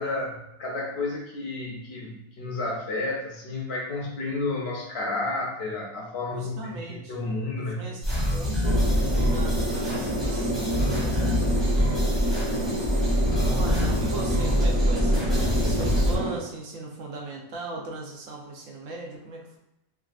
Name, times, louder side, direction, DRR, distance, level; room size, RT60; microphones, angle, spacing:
voice 1, 0.0-7.9, left 2 dB, 65° left, -1 dB, 0.7 m, -31 dB
voice 2, 6.3-7.3 7.6-8.9 9.1-11.7 12.1-13.0 13.5-15.3 15.7-19.6, right 2 dB, 75° right, 0 dB, 1.0 m, -38 dB
sound 1, 8.0-16.2, equal, ahead, 0.6 m, -25 dB
sound 2, 8.6-16.4, equal, 50° right, 1.2 m, -29 dB
3.3 x 2.3 x 2.4 m, 0.86 s
omnidirectional pair, 1.4 m